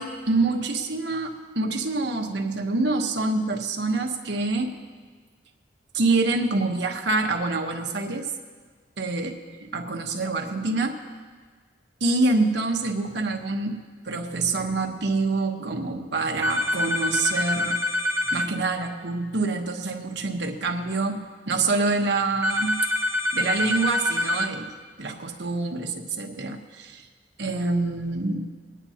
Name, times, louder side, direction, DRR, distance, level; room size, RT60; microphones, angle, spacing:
voice 1, 0.0-4.7 5.9-8.3 9.0-9.3 9.6-11.0 12.0-17.8 18.3-22.8 23.3-27.0 27.4-28.5, right 3 dB, 70° right, 3 dB, 1.1 m, -26 dB
sound 1, 16.4-18.5 22.4-24.5, left 1 dB, 15° right, 0.6 m, -25 dB
23.0 x 9.7 x 2.8 m, 1.5 s
head